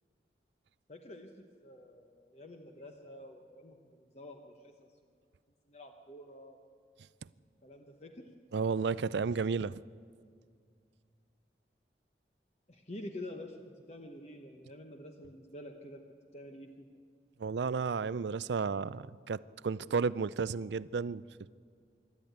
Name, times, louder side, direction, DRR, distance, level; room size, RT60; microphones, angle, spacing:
voice 1, 0.9-4.9 5.7-6.7 7.6-8.3 12.7-16.0 16.3-16.9, left 1 dB, 40° left, 1.0 m, -48 dB
voice 2, 8.5-9.8 17.4-21.2, right 5 dB, 80° right, 0.4 m, -32 dB
25.5 x 12.0 x 9.4 m
head